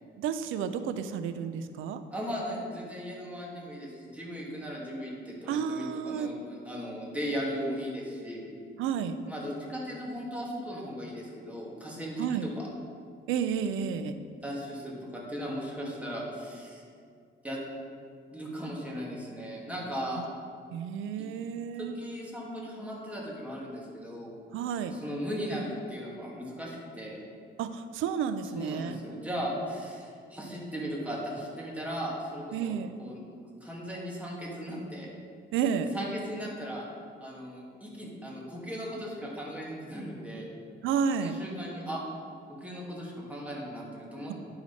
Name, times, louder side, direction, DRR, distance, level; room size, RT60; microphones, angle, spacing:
voice 1, 0.2-2.0 5.5-6.3 8.8-9.2 12.2-12.5 13.3-14.2 20.2-20.3 20.7-22.0 24.5-25.0 27.6-29.0 32.5-32.9 35.5-35.9 40.8-41.4, right 7 dB, 85° right, 10 dB, 0.5 m, -31 dB
voice 2, 2.1-8.5 9.3-12.3 12.6-12.7 14.4-16.8 17.4-17.6 18.3-20.2 21.2-21.3 21.8-24.3 24.9-27.2 28.6-32.7 33.0-33.2 33.6-35.1 35.9-36.9 37.2-40.5 41.2-42.0 42.6-44.3, equal, 5° right, -4 dB, 2.2 m, -37 dB
11.0 x 4.9 x 4.1 m, 2.2 s
cardioid pair, 90°, 20 cm